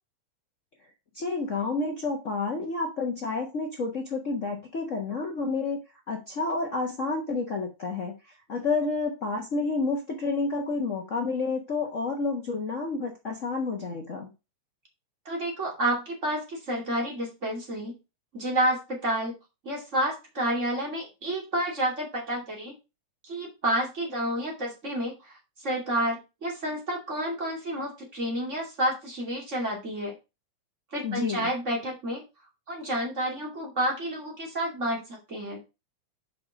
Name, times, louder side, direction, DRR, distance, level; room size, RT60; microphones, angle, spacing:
voice 1, 1.1-5.8 6.1-8.1 8.5-14.3 31.0-31.5, left 3 dB, 70° left, 1 dB, 0.7 m, -30 dB
voice 2, 15.2-17.9 18.3-19.3 19.6-22.7 23.2-30.1 30.9-32.2 32.7-35.6, right 1 dB, 25° right, -1 dB, 2.6 m, -30 dB
6.9 x 5.0 x 5.0 m, 0.27 s
omnidirectional pair, 3.3 m